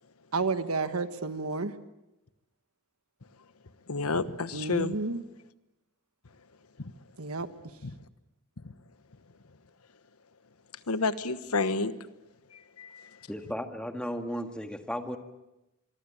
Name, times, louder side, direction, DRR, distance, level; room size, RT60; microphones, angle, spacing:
voice 1, 0.3-1.7 4.5-5.2 7.2-7.5, right 3 dB, 75° right, 11 dB, 1.5 m, -31 dB
voice 2, 3.9-4.9 6.8-6.9 10.9-11.9 12.8-13.1, left 3 dB, 85° left, 13 dB, 1.2 m, -29 dB
voice 3, 13.3-15.2, equal, 5° left, 6 dB, 1.8 m, -35 dB
24.5 x 23.5 x 8.8 m, 0.97 s
head